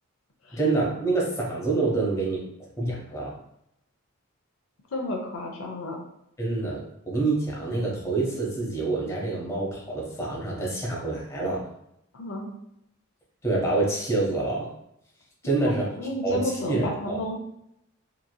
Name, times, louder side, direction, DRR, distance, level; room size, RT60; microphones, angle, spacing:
voice 1, 0.5-2.4 2.8-3.4 6.4-11.6 13.4-14.7 15.4-15.9 16.2-17.2, right 3 dB, 15° left, -4 dB, 0.6 m, -27 dB
voice 2, 4.9-6.0 12.1-12.5 15.4-17.4, left 1 dB, 65° left, 1 dB, 0.5 m, -32 dB
2.9 x 2.5 x 2.2 m, 0.78 s
head